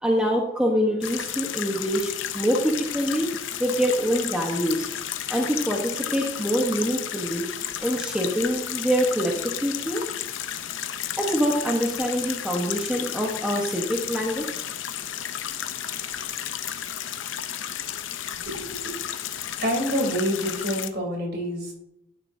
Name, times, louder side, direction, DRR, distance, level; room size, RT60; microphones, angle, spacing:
voice 1, 0.0-3.3 3.6-4.9 5.3-7.4 7.8-10.0 11.2-14.6, equal, 5° right, -1 dB, 1.0 m, -25 dB
sound 1, 1.0-20.9, left 10 dB, 70° left, 0.6 m, -33 dB
voice 2, 18.4-19.0 19.6-21.7, equal, 50° right, 1 dB, 3.2 m, -27 dB
11.5 x 9.6 x 2.7 m, 0.82 s
head